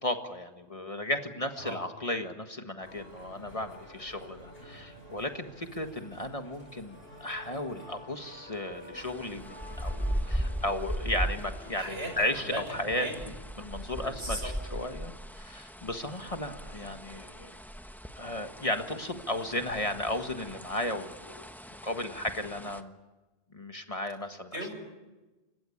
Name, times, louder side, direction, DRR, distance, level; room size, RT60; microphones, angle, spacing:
voice 1, 0.0-13.1 13.6-17.5 18.1-21.5 21.8-22.9 23.5-24.5, left 1 dB, 30° left, 6 dB, 1.7 m, -34 dB
sound 1, 2.8-12.3, left 1 dB, 60° left, 7.2 m, -49 dB
sound 2, 9.0-22.8, equal, ahead, 1.1 m, -38 dB
voice 2, 11.7-13.2 13.9-14.5 24.5-24.7, right 1 dB, 85° right, 3 dB, 6.9 m, -38 dB
29.5 x 16.0 x 10.0 m, 1.1 s
omnidirectional pair, 1.1 m